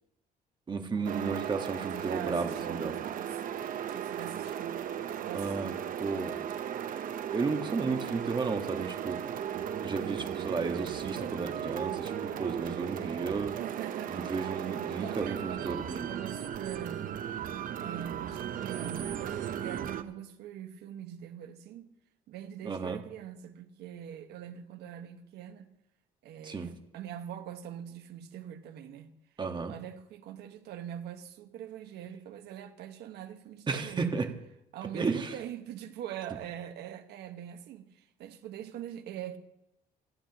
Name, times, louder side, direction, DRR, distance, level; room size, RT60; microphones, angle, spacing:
voice 1, 0.7-2.9 5.3-6.4 7.3-9.2 9.8-13.6 14.1-16.2 22.6-23.0 26.4-26.7 29.4-29.7 33.7-34.3 34.9-35.3, right 4 dB, 25° right, 1.5 m, -33 dB
sound 1, 1.0-20.0, right 9 dB, 55° right, 0.9 m, -36 dB
voice 2, 1.9-3.4 3.9-4.8 5.2-5.6 13.6-14.3 14.6-17.2 17.5-21.9 22.3-25.7 26.2-29.1 29.7-34.1 34.7-39.4, right 10 dB, 75° right, 1.4 m, -43 dB
28.0 x 10.0 x 3.0 m
cardioid pair, 110°, 17 cm